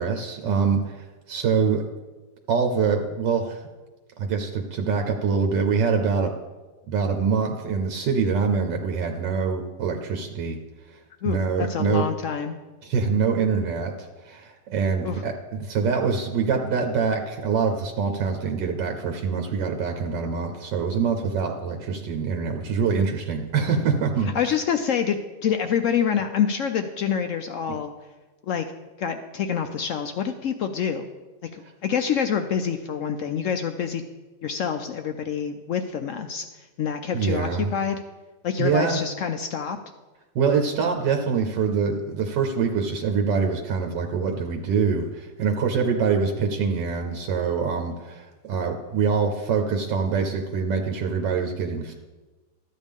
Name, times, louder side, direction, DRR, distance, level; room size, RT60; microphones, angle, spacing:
voice 1, 0.0-1.8 2.5-3.6 4.2-6.3 6.9-10.6 10.9-11.0 11.2-12.0 12.8-15.3 15.6-24.5 37.1-37.7 38.6-39.0 40.3-51.9, right 5 dB, 85° right, 3 dB, 1.5 m, -24 dB
voice 2, 11.2-12.6 15.0-15.2 24.3-27.9 28.4-28.6 29.0-31.1 31.5-34.0 34.4-36.4 36.8-38.0 38.4-39.8, left 7 dB, 75° left, 6 dB, 0.7 m, -26 dB
13.0 x 8.9 x 3.5 m, 1.2 s
omnidirectional pair, 1.9 m